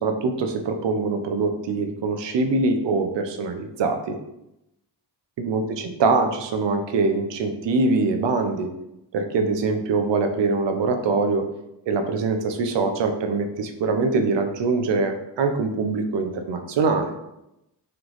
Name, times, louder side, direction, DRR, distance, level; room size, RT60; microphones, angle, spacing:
voice 1, 0.0-4.2 5.4-8.7 9.1-11.4 11.9-17.1, right 3 dB, 90° right, 6 dB, 0.6 m, -23 dB
3.3 x 3.0 x 3.8 m, 0.88 s
cardioid pair, 75°, 42 cm